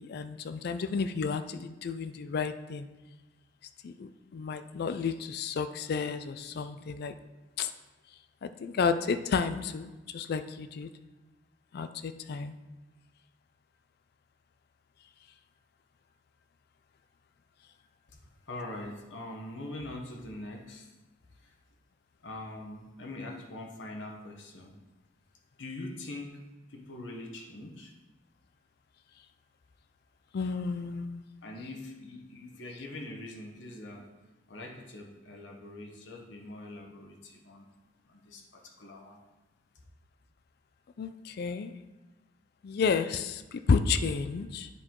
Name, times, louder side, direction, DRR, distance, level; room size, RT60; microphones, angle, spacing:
voice 1, 0.0-2.9 3.8-7.1 7.6-7.7 8.4-10.9 11.7-12.6 30.3-31.2 41.0-41.7 42.6-44.7, left 5 dB, 55° left, 11 dB, 0.4 m, -31 dB
voice 2, 18.5-20.9 21.3-21.5 22.2-24.7 25.6-26.4 26.7-27.9 31.4-34.1 34.5-37.7 38.1-39.2, left 2 dB, 70° left, 1 dB, 1.1 m, -43 dB
9.9 x 4.5 x 3.7 m, 1.1 s
head